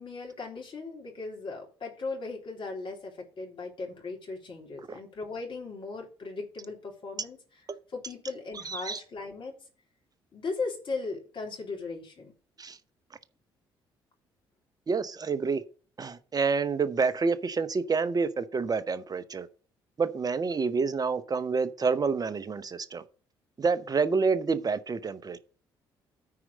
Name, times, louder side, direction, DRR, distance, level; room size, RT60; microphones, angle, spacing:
voice 1, 0.0-9.5 10.3-12.3, left 3 dB, 45° left, 3.3 m, -38 dB
voice 2, 8.6-9.0 12.6-12.8 14.9-15.6 16.0-19.5 20.0-23.0 23.6-25.4, right 5 dB, 35° right, 1.0 m, -28 dB
9.7 x 4.7 x 6.3 m
hypercardioid pair, 45°, 12 cm